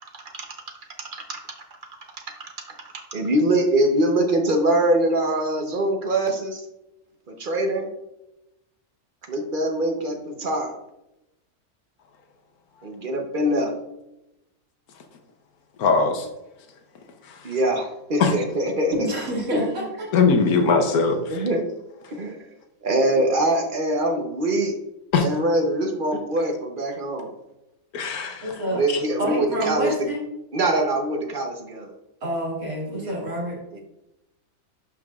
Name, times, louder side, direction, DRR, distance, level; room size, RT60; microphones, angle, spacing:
voice 1, 3.1-6.7 7.3-7.9 9.3-10.7 12.8-13.8 17.4-18.9 19.5-19.8 21.3-21.7 22.1-22.6 22.8-24.8 25.2-27.3 28.7-30.1 30.5-31.9 32.9-33.2 33.7-33.8, right 1 dB, 40° right, 3 dB, 0.9 m, -23 dB
voice 2, 15.8-16.3 17.2-17.5 18.2-18.3 20.1-21.5 25.1-25.3 27.9-28.6 28.9-29.0, left 4 dB, 85° left, 5 dB, 1.3 m, -21 dB
voice 3, 19.0-19.8 28.4-28.9 29.2-30.2 32.2-33.6, equal, 70° right, -4 dB, 2.6 m, -27 dB
11.5 x 4.7 x 2.4 m, 0.91 s
omnidirectional pair, 1.5 m